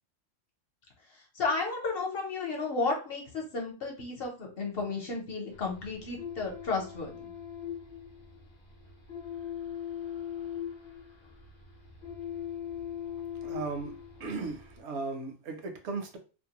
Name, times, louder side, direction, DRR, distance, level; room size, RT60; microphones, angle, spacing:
voice 1, 1.3-7.2, left 3 dB, 55° left, 0 dB, 0.9 m, -33 dB
sound 1, 5.5-14.8, left 9 dB, 35° left, 0.5 m, -41 dB
voice 2, 13.4-13.9 14.2-16.2, right 4 dB, 75° right, 5 dB, 0.8 m, -36 dB
2.5 x 2.0 x 2.9 m, 0.34 s
omnidirectional pair, 1.2 m